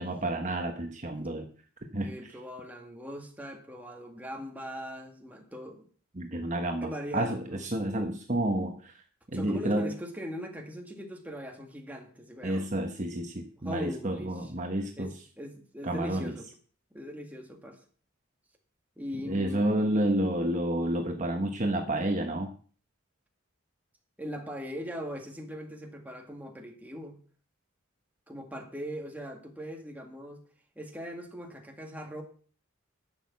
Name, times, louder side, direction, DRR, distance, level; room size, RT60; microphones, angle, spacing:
voice 1, 0.0-1.5 1.9-2.2 6.2-9.0 9.3-9.9 12.4-15.1 15.8-16.3 19.2-22.5, right 1 dB, 35° right, 1.2 m, -30 dB
voice 2, 2.0-5.9 6.8-7.7 9.3-12.7 13.6-14.5 15.0-16.5 16.9-17.8 19.0-20.1 24.2-27.2 28.3-30.4 30.8-32.2, equal, 10° right, 1.9 m, -40 dB
11.5 x 6.6 x 7.4 m
head